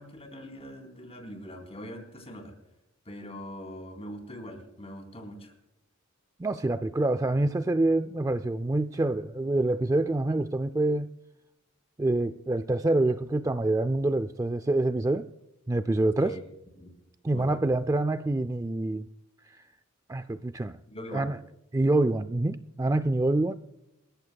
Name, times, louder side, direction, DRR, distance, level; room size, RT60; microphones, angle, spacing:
voice 1, 0.0-2.6 3.1-5.5 16.2-16.4 16.8-16.9 17.3-17.7 20.9-21.3, equal, 30° left, 4.0 m, -42 dB
voice 2, 6.4-11.1 12.0-15.3 15.7-16.3 17.2-19.1 20.1-20.7 21.1-21.4 21.7-23.6, right 2 dB, 15° right, 0.4 m, -26 dB
27.5 x 15.0 x 2.3 m
head